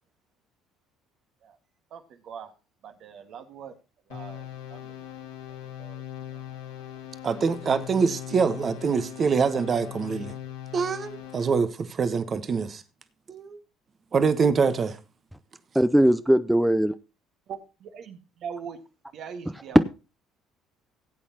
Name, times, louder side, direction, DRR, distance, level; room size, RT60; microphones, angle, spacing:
voice 1, 1.9-2.5 2.8-3.8 4.1-5.1 5.5-6.0 6.3-6.4 17.5-18.8 19.1-19.8, right 7 dB, 60° right, 1.7 m, -42 dB
sound 1, 4.1-11.7, left 11 dB, 90° left, 2.5 m, -40 dB
voice 2, 7.2-10.3 10.7-12.8 13.3-13.6 14.1-15.0, right 5 dB, 40° right, 1.1 m, -25 dB
voice 3, 15.7-17.0 19.5-19.9, equal, 5° right, 0.6 m, -20 dB
17.0 x 8.4 x 2.9 m
hypercardioid pair, 70°, 0 cm